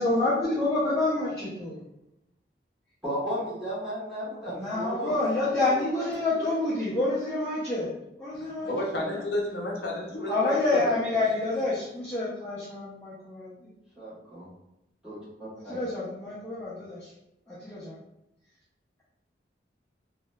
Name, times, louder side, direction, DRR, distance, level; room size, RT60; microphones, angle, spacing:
voice 1, 0.0-1.8 4.5-7.9 8.2-8.7 9.0-9.1 10.3-13.7 15.6-17.1 17.5-18.0, left 2 dB, 15° left, -10 dB, 0.5 m, -28 dB
voice 2, 3.0-5.4 5.7-6.0 6.3-6.6 14.0-14.5 15.0-15.8, equal, 5° right, -11 dB, 1.1 m, -35 dB
voice 3, 8.3-11.0, left 1 dB, 70° left, -1 dB, 0.5 m, -32 dB
2.8 x 2.0 x 2.2 m, 0.87 s
head